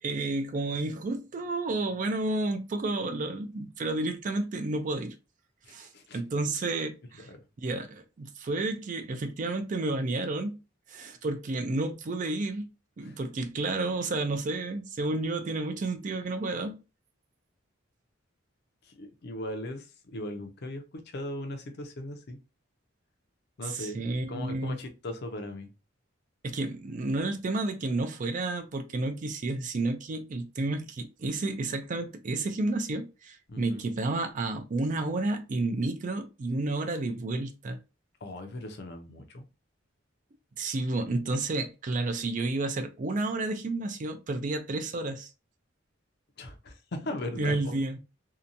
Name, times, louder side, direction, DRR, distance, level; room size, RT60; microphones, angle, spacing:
voice 1, 0.0-5.1 5.7-7.3 7.6-10.6 10.9-12.7 13.0-16.8 23.6-24.8 26.4-37.8 40.6-45.3 47.4-48.0, right 2 dB, 40° right, 0.4 m, -31 dB
voice 2, 5.7-6.2 7.3-7.4 13.0-13.2 18.9-20.8 21.1-22.4 23.6-24.0 24.3-25.7 33.5-33.9 38.2-39.4 46.4-47.6, left 1 dB, 55° left, 0.6 m, -38 dB
2.8 x 2.2 x 2.5 m
head